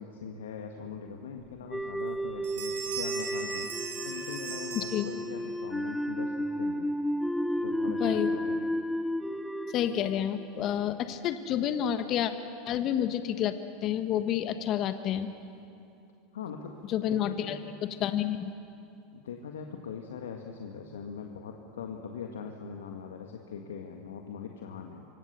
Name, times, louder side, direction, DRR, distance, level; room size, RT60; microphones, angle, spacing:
voice 1, 0.0-3.7 4.0-6.9 7.5-8.7 16.3-16.7 17.1-17.6 19.1-25.1, left 6 dB, 80° left, 3 dB, 1.8 m, -41 dB
Bell, 1.4-1.5 1.9-2.2 2.4-5.6, right 7 dB, 70° right, 7.8 m, -39 dB
sound 1, 1.7-10.9, equal, ahead, 1.0 m, -33 dB
voice 2, 4.7-5.0 8.0-8.3 9.7-12.3 12.6-13.5 13.8-15.3 16.9-17.6 18.0-18.5, left 10 dB, 45° left, 9 dB, 1.4 m, -29 dB
26.0 x 25.0 x 6.9 m, 2.6 s
hypercardioid pair, 90°, 0 cm